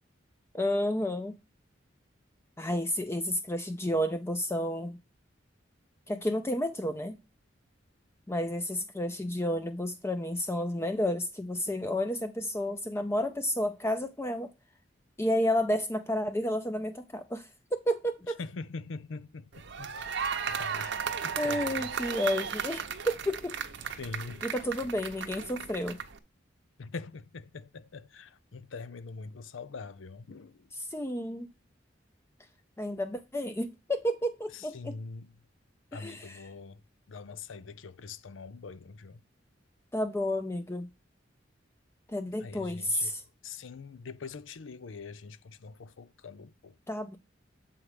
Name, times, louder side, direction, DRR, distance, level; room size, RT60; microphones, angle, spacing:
voice 1, 0.5-1.3 2.6-5.0 6.1-7.2 8.3-14.5 15.2-18.4 21.4-24.0 24.4-26.0 30.9-31.5 32.8-34.9 35.9-36.4 39.9-40.9 42.1-43.2 46.9-47.2, left 1 dB, 15° left, 0.5 m, -31 dB
voice 2, 18.4-20.9 21.2-21.9 24.0-24.5 26.8-30.7 34.5-35.3 35.9-36.8 37.1-39.2 42.4-43.1 43.4-46.7, left 4 dB, 85° left, 0.5 m, -43 dB
sound 1, 19.5-26.2, right 7 dB, 65° right, 0.8 m, -35 dB
7.1 x 4.8 x 4.9 m
head